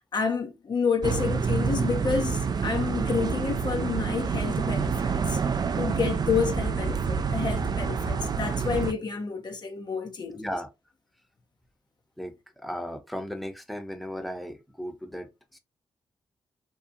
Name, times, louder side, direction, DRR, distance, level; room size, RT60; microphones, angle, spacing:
voice 1, 0.1-5.4 5.8-10.4, left 5 dB, 45° left, 0.6 m, -29 dB
sound 1, 1.0-8.9, right 5 dB, 40° right, 0.4 m, -27 dB
voice 2, 10.3-10.7 12.2-15.6, equal, ahead, 0.8 m, -36 dB
2.7 x 2.4 x 2.5 m
supercardioid pair, 45°, 10 cm